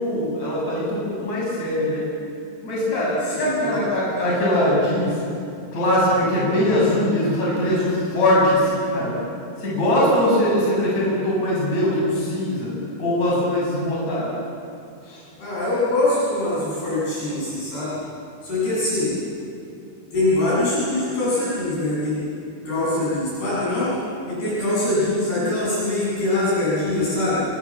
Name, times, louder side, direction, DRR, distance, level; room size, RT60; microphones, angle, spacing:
voice 1, 0.0-2.0 2.6-5.2 5.7-9.1 9.6-12.7 13.0-14.3 15.0-15.2, left 1 dB, 35° left, -5 dB, 8.7 m, -21 dB
voice 2, 3.3-3.8 15.4-17.9 18.4-19.1 20.1-22.2 22.7-23.9 24.3-27.4, left 2 dB, 55° left, -8 dB, 9.7 m, -23 dB
28.0 x 26.0 x 7.5 m, 2.5 s
omnidirectional pair, 5.5 m